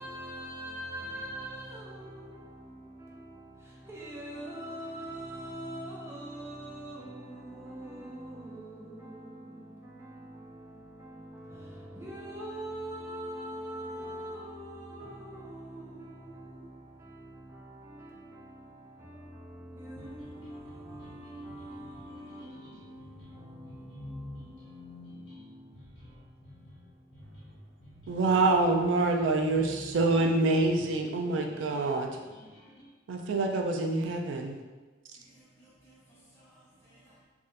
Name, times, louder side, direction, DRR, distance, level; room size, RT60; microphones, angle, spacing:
voice 1, 0.0-27.6 27.9-28.1, right 1 dB, 15° right, 0.5 m, -43 dB
sound 1, 20.0-32.9, left 1 dB, 85° left, 1.2 m, -50 dB
voice 2, 28.1-32.1 33.1-34.6, right 2 dB, 80° right, 0.4 m, -26 dB
voice 3, 35.2-37.2, right 1 dB, 15° left, 1.0 m, -60 dB
3.4 x 2.4 x 2.7 m
head